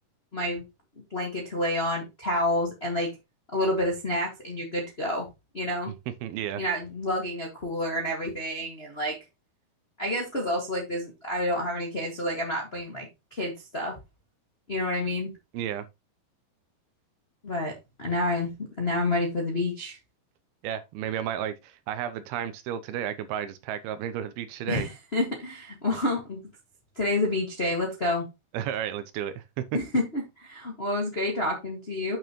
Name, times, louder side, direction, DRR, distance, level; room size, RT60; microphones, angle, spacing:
voice 1, 0.3-0.6 1.1-3.1 3.5-5.3 5.5-5.9 6.6-9.2 10.0-14.0 14.7-15.3 17.4-20.0 24.7-26.4 26.9-28.2 29.7-32.2, left 1 dB, 45° left, 0.7 m, -29 dB
voice 2, 6.2-6.6 15.5-15.9 20.6-24.9 28.5-29.6, right 10 dB, 85° right, 2.5 m, -32 dB
8.5 x 6.4 x 3.0 m
omnidirectional pair, 4.7 m